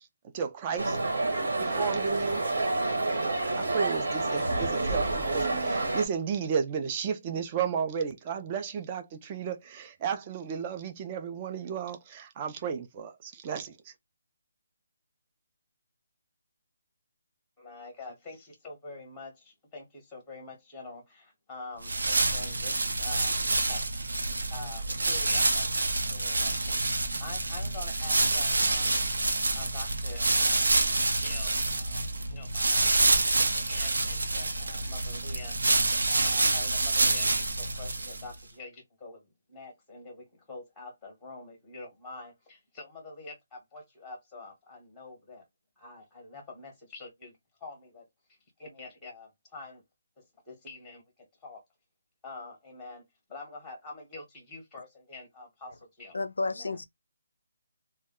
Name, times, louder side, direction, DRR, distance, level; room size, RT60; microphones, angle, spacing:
voice 1, 0.3-1.0 1.6-2.5 3.6-13.9, right 6 dB, 15° right, 0.3 m, -33 dB
sound 1, 0.8-6.1, right 2 dB, 60° right, 0.9 m, -28 dB
voice 2, 17.6-24.2 24.5-29.0 29.6-30.7 31.1-35.6 36.1-45.5 45.8-49.8 50.2-51.6 52.2-53.0 53.3-56.1 56.5-56.8, left 3 dB, 5° left, 0.8 m, -46 dB
sound 2, 21.8-38.4, right 2 dB, 90° right, 0.6 m, -27 dB
voice 3, 56.1-56.8, left 3 dB, 80° left, 0.5 m, -31 dB
2.1 x 2.1 x 3.5 m
hypercardioid pair, 175°, 0 cm